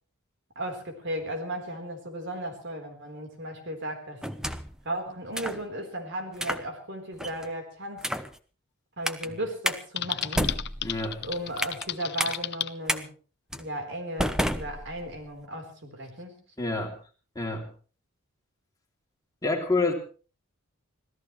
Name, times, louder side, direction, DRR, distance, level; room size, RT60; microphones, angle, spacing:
voice 1, 0.6-4.2 4.8-8.1 9.0-10.6 11.2-13.1 13.5-16.4, right 1 dB, 55° right, 4 dB, 4.1 m, -35 dB
sound 1, 4.2-4.8 5.3-5.6 6.3-6.7 7.2-7.5 8.0-8.3 9.0-9.3 9.6-9.8 10.2-11.9 12.2-12.4 12.9-13.0 13.5-13.7 14.2-15.3, equal, 5° right, 0.9 m, -30 dB
Typing, 10.0-12.7, left 11 dB, 50° left, 0.7 m, -33 dB
voice 2, 10.8-11.2 16.6-17.0 17.3-17.7 19.4-19.9, left 3 dB, 15° left, 1 dB, 3.0 m, -28 dB
25.5 x 17.0 x 3.2 m, 0.38 s
head